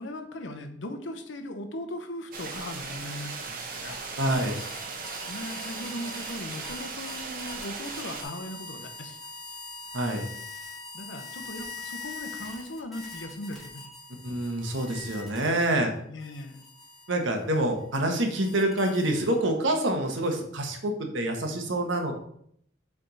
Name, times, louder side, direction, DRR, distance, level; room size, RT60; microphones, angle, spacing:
voice 1, 0.0-4.0 5.3-9.2 10.9-13.8 16.1-16.6, left 1 dB, 85° left, 6 dB, 0.9 m, -38 dB
sound 1, 2.3-8.2, right 4 dB, 50° right, 0.9 m, -38 dB
voice 2, 4.2-4.6 9.9-10.2 14.2-15.9 17.1-22.1, right 1 dB, 85° right, 3 dB, 1.2 m, -26 dB
sound 2, 4.3-15.8 16.2-19.6, left 3 dB, ahead, 1.4 m, -43 dB
7.4 x 3.6 x 4.0 m, 0.67 s
head